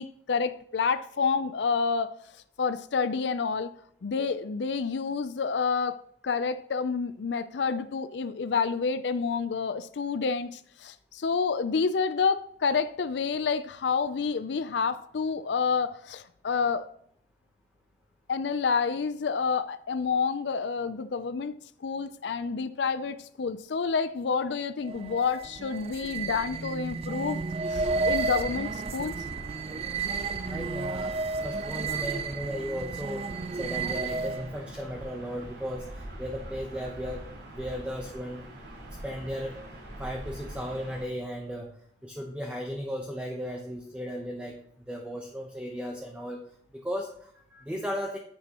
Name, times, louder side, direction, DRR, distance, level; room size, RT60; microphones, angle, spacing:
voice 1, 0.0-2.1 2.6-3.7 4.0-6.0 6.2-16.9 18.3-21.6 21.8-27.4 27.7-29.1, left 5 dB, 80° left, 0.5 m, -29 dB
sound 1, 24.8-34.6, right 4 dB, 35° right, 0.4 m, -32 dB
Gull seagull / Ocean, 27.7-41.1, right 1 dB, 80° right, 4.3 m, -43 dB
voice 2, 30.5-31.1 31.4-33.2 33.6-37.2 37.5-38.4 39.0-39.6 40.0-41.7 42.0-44.6 44.9-46.4 46.7-48.2, equal, 5° right, 0.9 m, -35 dB
10.0 x 8.6 x 3.0 m
head